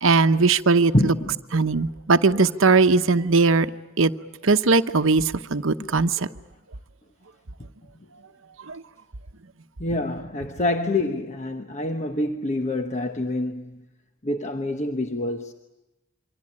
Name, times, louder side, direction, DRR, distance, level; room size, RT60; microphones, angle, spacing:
voice 1, 0.0-0.9 1.5-3.7 4.0-4.1 4.4-5.2 5.5-6.1, right 4 dB, 70° right, 0.9 m, -19 dB
voice 2, 0.9-1.4 5.8-5.9 9.8-13.8 14.2-15.5, left 1 dB, 35° left, 1.1 m, -26 dB
27.0 x 24.5 x 8.7 m
head